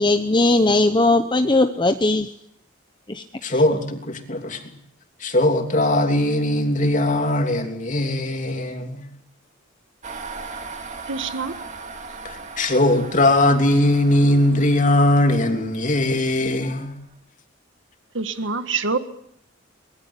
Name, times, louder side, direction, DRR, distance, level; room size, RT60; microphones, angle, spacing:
voice 1, 0.0-2.3 3.1-3.2, left 2 dB, 25° left, 8 dB, 0.9 m, -18 dB
voice 2, 3.4-4.8 5.2-9.1 12.2-16.9, left 1 dB, 40° left, 5 dB, 3.1 m, -20 dB
sound 1, 10.0-17.0, right 4 dB, 40° right, 2.6 m, -39 dB
voice 3, 11.1-11.6 18.1-19.0, right 4 dB, 70° right, 10 dB, 1.8 m, -25 dB
24.0 x 20.5 x 8.3 m, 0.74 s
head